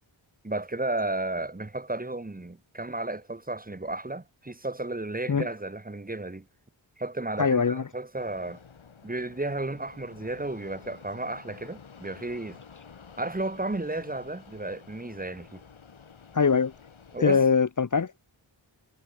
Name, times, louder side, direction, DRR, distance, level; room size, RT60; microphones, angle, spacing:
voice 1, 0.4-6.5 7.0-8.6 9.0-12.6 13.2-15.6 17.1-17.4, right 2 dB, 20° right, 2.3 m, -33 dB
voice 2, 7.4-7.9 16.3-16.7 17.2-18.2, left 5 dB, 40° left, 1.0 m, -22 dB
Fixed-wing aircraft airplane, 8.2-17.2, left 6 dB, 80° left, 7.7 m, -51 dB
wide cardioid pair, 130°, 47 cm